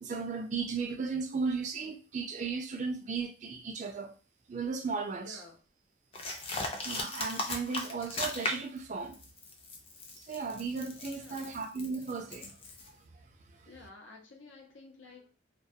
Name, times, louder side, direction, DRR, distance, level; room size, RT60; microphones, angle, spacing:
voice 1, 0.0-4.2 4.5-5.4 6.8-9.2 10.2-12.6, right 4 dB, 40° right, 0.3 m, -35 dB
voice 2, 5.2-5.6 11.1-11.6 13.7-15.3, left 3 dB, 90° left, 0.7 m, -52 dB
sound 1, 6.1-8.8 9.1-12.9, left 2 dB, 30° left, 0.4 m, -37 dB
2.2 x 2.2 x 2.6 m
head